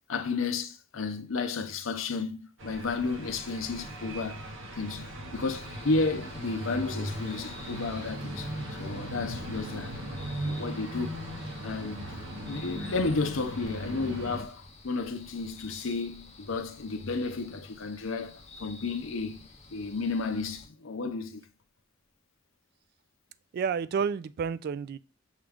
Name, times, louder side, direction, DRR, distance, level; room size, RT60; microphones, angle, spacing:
voice 1, 0.1-9.9 10.3-11.2 11.6-12.1 12.5-21.4, left 3 dB, 75° left, 0.6 m, -32 dB
sound 1, 2.6-14.4, right 1 dB, 70° right, 1.0 m, -38 dB
sound 2, 5.3-20.7, left 3 dB, 35° left, 0.7 m, -50 dB
voice 2, 23.5-25.0, right 6 dB, 50° right, 0.3 m, -30 dB
6.4 x 2.4 x 3.4 m
head